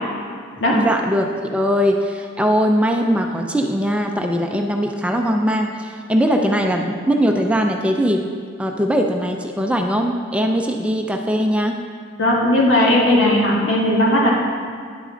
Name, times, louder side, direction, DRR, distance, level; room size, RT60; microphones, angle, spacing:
voice 1, 0.7-8.3 8.6-11.8, equal, 5° right, 3 dB, 0.4 m, -20 dB
voice 2, 12.2-14.3, left 1 dB, 80° left, -4 dB, 2.0 m, -16 dB
10.5 x 8.2 x 3.8 m, 2.1 s
head